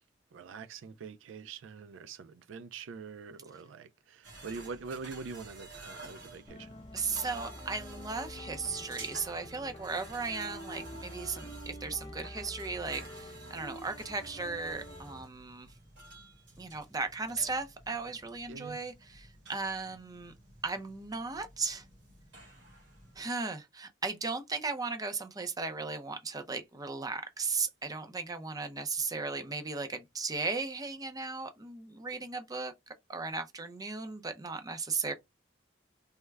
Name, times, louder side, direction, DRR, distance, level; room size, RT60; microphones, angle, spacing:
voice 1, 0.3-6.8 18.5-18.8, right 5 dB, 85° right, 0.4 m, -44 dB
sound 1, 4.2-23.2, right 2 dB, 70° right, 1.6 m, -51 dB
sound 2, 6.5-15.2, equal, 30° left, 0.7 m, -47 dB
voice 2, 6.9-15.7 16.6-20.3 20.6-21.9 23.2-35.1, right 4 dB, 20° right, 0.5 m, -36 dB
3.4 x 2.1 x 3.2 m
head